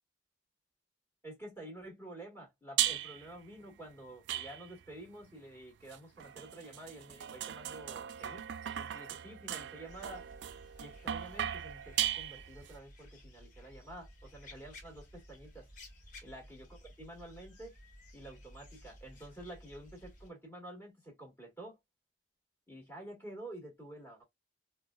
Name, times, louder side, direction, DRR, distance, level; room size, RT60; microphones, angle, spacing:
voice 1, 1.2-10.3 10.8-15.7 16.2-17.7 18.1-21.8 22.7-24.2, right 1 dB, 10° left, 1.6 m, -49 dB
sound 1, 2.8-3.3 4.3-4.9 5.9-12.7, right 11 dB, 70° right, 0.3 m, -37 dB
sound 2, 9.8-20.3, left 1 dB, 45° left, 1.4 m, -55 dB
4.4 x 2.2 x 2.4 m
head